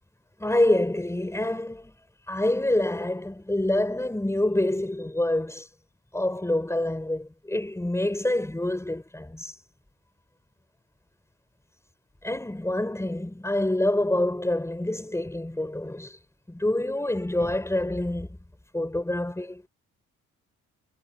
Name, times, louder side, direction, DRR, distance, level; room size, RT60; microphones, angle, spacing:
voice 1, 0.4-1.9 2.3-5.7 6.1-9.5 12.2-16.2 16.5-18.3 18.7-19.6, left 1 dB, 10° left, 5.8 m, -26 dB
cardioid pair, 90°, 30 cm